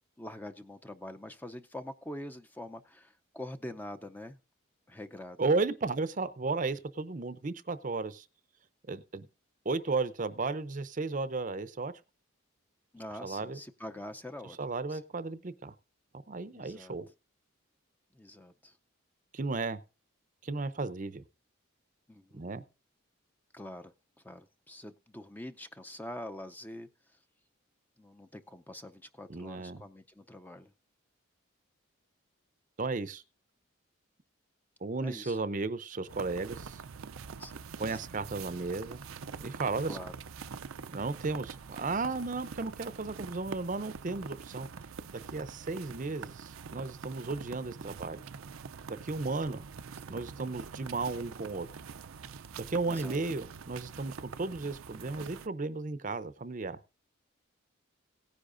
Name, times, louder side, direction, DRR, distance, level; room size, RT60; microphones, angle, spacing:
voice 1, 0.2-4.4 4.9-5.4 12.9-14.6 14.9-15.0 16.5-17.0 18.1-18.7 22.1-22.5 23.5-23.9 24.2-26.9 28.0-30.7 35.0-35.4 37.4-38.1 39.9-40.1 50.1-50.2 52.9-53.2, left 1 dB, 10° left, 8 dB, 0.5 m, -45 dB
voice 2, 5.4-8.2 8.9-9.3 9.6-11.9 13.2-13.6 14.6-15.7 16.3-17.1 19.3-19.8 20.4-21.2 22.3-22.6 29.3-29.8 32.8-33.2 34.8-36.8 37.8-39.0 39.4-40.0 40.9-44.7 45.1-48.2 48.9-49.6 50.1-51.7 52.6-56.8, right 3 dB, 40° right, 13 dB, 0.6 m, -34 dB
sound 1, 36.1-55.5, right 5 dB, 80° right, 0.5 m, -45 dB
17.5 x 9.9 x 2.6 m, 0.31 s
head